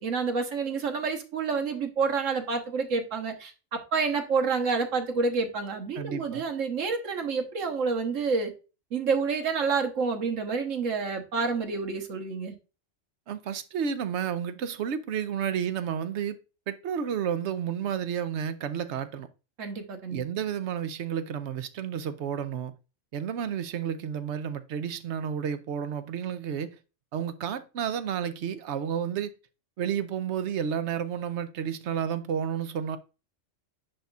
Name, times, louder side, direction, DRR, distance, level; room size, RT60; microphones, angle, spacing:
voice 1, 0.0-8.5 8.9-12.5 19.6-20.2, right 4 dB, 90° right, 1.5 m, -28 dB
voice 2, 6.0-6.4 13.3-16.4 16.7-19.3 20.1-22.7 23.1-26.7 27.1-29.3 29.8-33.0, right 8 dB, 65° right, 0.9 m, -31 dB
10.0 x 4.1 x 2.4 m
omnidirectional pair, 1.3 m